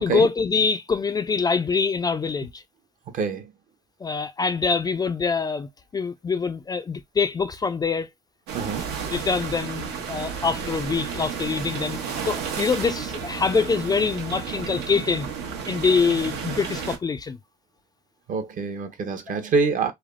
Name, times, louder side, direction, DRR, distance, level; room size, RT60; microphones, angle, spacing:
voice 1, 0.0-2.6 4.0-8.1 9.1-15.3 15.7-17.4 19.3-19.4, left 5 dB, 25° left, 0.3 m, -24 dB
voice 2, 3.1-3.4 8.5-8.8 18.3-19.9, right 4 dB, 50° right, 0.8 m, -25 dB
sound 1, 8.5-17.0, right 6 dB, 85° right, 0.9 m, -32 dB
3.3 x 2.0 x 2.3 m
cardioid pair, 110°, 17 cm